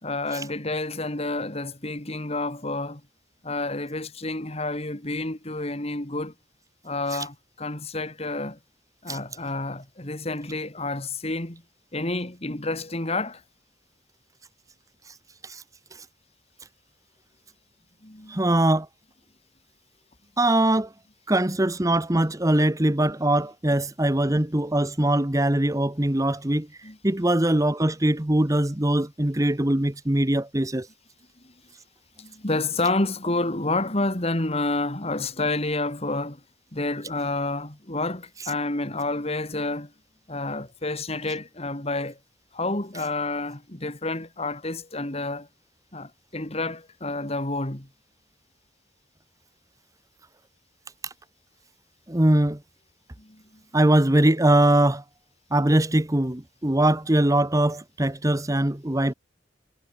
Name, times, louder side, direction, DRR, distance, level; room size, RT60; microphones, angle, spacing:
voice 1, 0.0-3.0 3.4-6.3 6.8-8.6 9.0-11.6 11.9-13.4 18.0-18.6 26.8-27.0 31.4-31.5 32.2-36.4 36.7-39.9 40.3-42.2 42.5-45.5 45.9-47.9 53.2-53.4, left 2 dB, 30° left, 2.5 m, -29 dB
voice 2, 18.3-18.9 20.4-20.9 21.3-30.9 51.0-51.1 52.1-52.6 53.7-55.0 55.5-59.1, right 1 dB, 15° right, 1.0 m, -22 dB
head